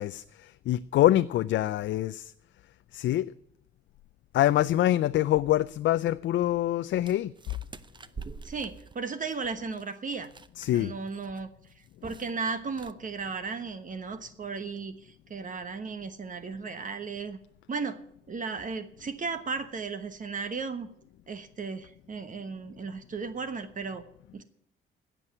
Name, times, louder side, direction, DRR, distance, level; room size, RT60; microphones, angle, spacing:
voice 1, 0.0-2.3 2.9-3.3 4.3-7.3 10.6-10.9, left 13 dB, 70° left, 0.4 m, -25 dB
sound 1, 7.0-10.8 11.1-11.4 11.7-12.4 12.7-12.9, right 4 dB, 25° right, 0.6 m, -45 dB
voice 2, 8.4-10.3 10.7-11.5 12.0-17.4 17.7-18.0 18.3-20.9 21.3-24.0 24.3-24.4, right 4 dB, 40° right, 1.1 m, -35 dB
17.0 x 6.1 x 9.8 m
cardioid pair, 90°, 20 cm